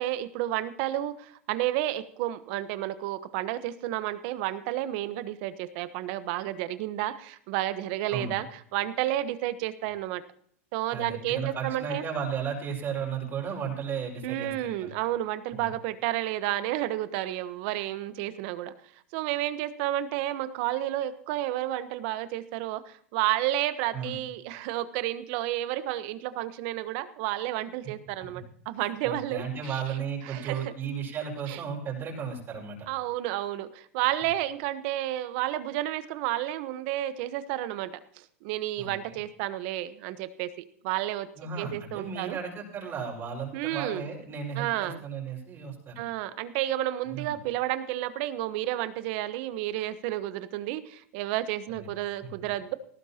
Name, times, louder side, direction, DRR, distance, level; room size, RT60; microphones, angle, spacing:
voice 1, 0.0-8.5 8.7-10.2 10.7-12.0 14.2-18.7 19.1-29.8 30.3-30.7 31.5-31.6 32.9-40.5 40.8-41.3 41.6-42.4 43.5-44.0 44.5-45.0 46.0-52.7, right 14 dB, 55° right, 13 dB, 1.1 m, -31 dB
voice 2, 10.9-14.9 15.5-15.7 23.9-24.1 28.8-32.9 38.8-39.2 41.4-46.0 47.1-47.4 51.8-51.9, right 6 dB, 30° right, -2 dB, 5.4 m, -34 dB
18.5 x 14.5 x 2.9 m, 0.62 s
hypercardioid pair, 120°, 7 cm